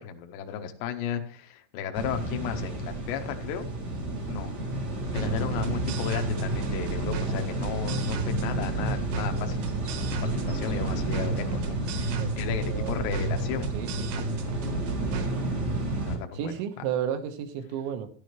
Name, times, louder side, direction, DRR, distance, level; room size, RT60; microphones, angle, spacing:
voice 1, 0.0-3.7 4.3-4.5 5.1-10.0 10.2-13.7 16.0-16.5, left 9 dB, 75° left, 5 dB, 2.9 m, -35 dB
sound 1, 1.9-16.2, right 2 dB, 45° right, 1.3 m, -31 dB
sound 2, 5.1-15.3, right 4 dB, 65° right, 2.5 m, -33 dB
voice 2, 12.7-13.3 13.7-14.3 16.3-18.1, right 9 dB, 80° right, 7 dB, 3.5 m, -33 dB
12.0 x 11.5 x 3.2 m, 0.43 s
omnidirectional pair, 5.4 m